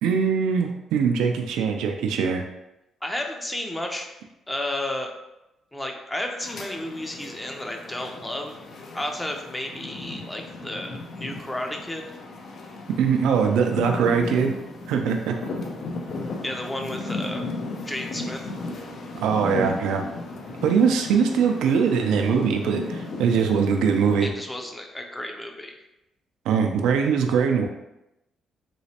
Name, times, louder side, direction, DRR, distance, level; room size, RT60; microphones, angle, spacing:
voice 1, 0.0-2.4 13.0-14.5 14.9-15.3 19.2-20.0 20.6-24.3 26.5-27.7, right 6 dB, 90° right, 4 dB, 0.3 m, -22 dB
voice 2, 3.0-4.1 4.5-5.1 5.7-8.6 8.9-12.1 16.4-17.4 17.9-18.4 24.2-25.8, left 1 dB, 10° left, 3 dB, 0.5 m, -32 dB
sound 1, 6.4-24.2, left 2 dB, 60° left, 0.5 m, -35 dB
3.1 x 3.0 x 2.8 m, 0.91 s
cardioid pair, 90°, 0 cm